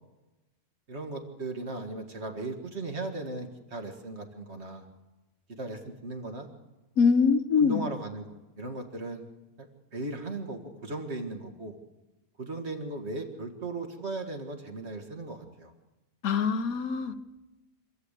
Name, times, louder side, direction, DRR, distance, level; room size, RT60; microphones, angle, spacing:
voice 1, 0.9-4.9 5.5-6.5 7.5-9.3 9.6-11.7 12.4-15.7, right 2 dB, 45° right, 4 dB, 2.2 m, -37 dB
voice 2, 7.0-7.8 16.2-17.2, left 5 dB, 70° left, 10 dB, 1.5 m, -23 dB
26.0 x 13.5 x 8.4 m, 1.1 s
omnidirectional pair, 1.6 m